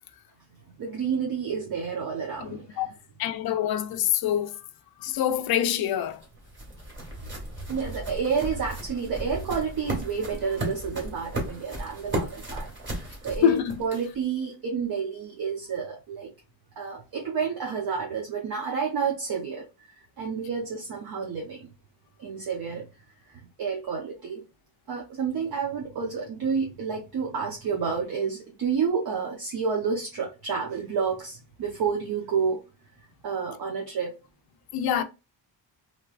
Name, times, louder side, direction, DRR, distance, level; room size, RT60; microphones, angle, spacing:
voice 1, 0.8-2.8 7.7-12.7 13.0-16.3 16.8-19.6 20.2-21.7 22.2-22.8 23.6-24.4 24.9-32.6 33.2-34.2, right 6 dB, 55° right, 0.9 m, -30 dB
voice 2, 2.4-2.9 3.2-4.7 5.0-6.2 13.4-13.8 34.7-35.0, left 10 dB, 55° left, 0.5 m, -25 dB
sound 1, 5.8-14.3, right 1 dB, 25° right, 1.6 m, -35 dB
3.2 x 3.1 x 2.4 m
cardioid pair, 140°, 45 cm